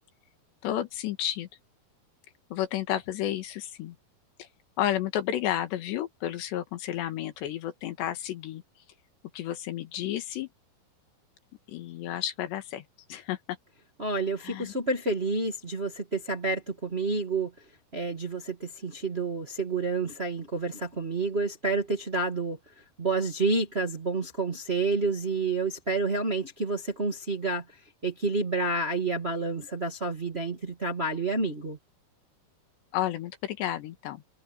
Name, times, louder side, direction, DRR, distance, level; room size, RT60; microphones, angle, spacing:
voice 1, 0.6-1.5 2.5-4.0 4.4-4.5 4.8-8.6 9.3-10.5 11.7-13.4 14.4-14.7 32.9-34.2, left 12 dB, 90° left, 4.0 m, -31 dB
voice 2, 14.0-17.5 17.9-27.6 28.0-31.8, right 3 dB, 25° right, 1.3 m, -29 dB
omnidirectional pair, 4.8 m